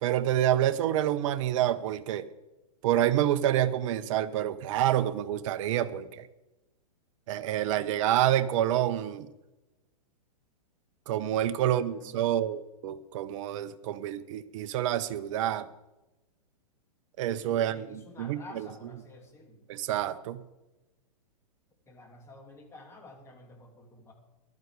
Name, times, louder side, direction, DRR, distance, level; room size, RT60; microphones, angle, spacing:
voice 1, 0.0-2.3 2.8-6.3 7.3-9.3 11.1-15.7 17.2-18.7 19.7-20.4, right 12 dB, 50° right, 12 dB, 1.0 m, -28 dB
voice 2, 11.6-12.2 17.4-19.7 21.9-24.1, left 1 dB, 10° left, 2 dB, 2.7 m, -50 dB
15.0 x 12.0 x 4.9 m, 1.0 s
hypercardioid pair, 130°, 21 cm